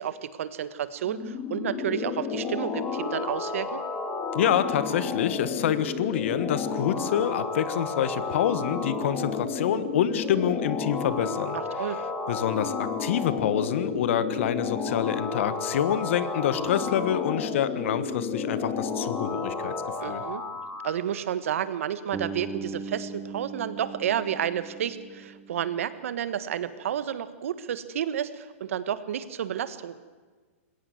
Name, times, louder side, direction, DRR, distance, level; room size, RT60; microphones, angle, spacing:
voice 1, 0.0-3.8 11.5-12.0 20.0-20.4 20.8-30.0, right 9 dB, 70° right, 14 dB, 1.4 m, -31 dB
sound 1, 1.0-21.0, left 5 dB, 15° left, 2.1 m, -31 dB
voice 2, 4.3-11.9 12.3-19.7 20.0-20.2, left 9 dB, 60° left, 14 dB, 1.4 m, -27 dB
Bass guitar, 22.1-26.2, right 4 dB, 10° right, 1.2 m, -39 dB
21.0 x 17.0 x 7.9 m, 1.4 s
hypercardioid pair, 155°, 8 cm